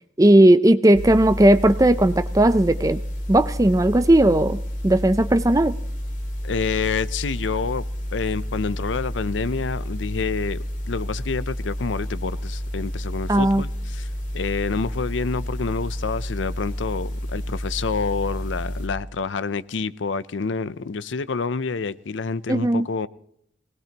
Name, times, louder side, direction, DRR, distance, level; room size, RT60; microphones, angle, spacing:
voice 1, 0.2-3.0 3.3-4.6 4.8-5.7 13.3-13.6 22.5-22.9, right 1 dB, 20° right, 0.5 m, -16 dB
sound 1, 0.9-18.9, equal, 45° left, 2.2 m, -30 dB
voice 2, 6.4-7.8 8.1-14.1 14.3-23.1, left 4 dB, 80° left, 0.6 m, -28 dB
21.0 x 19.0 x 2.9 m
head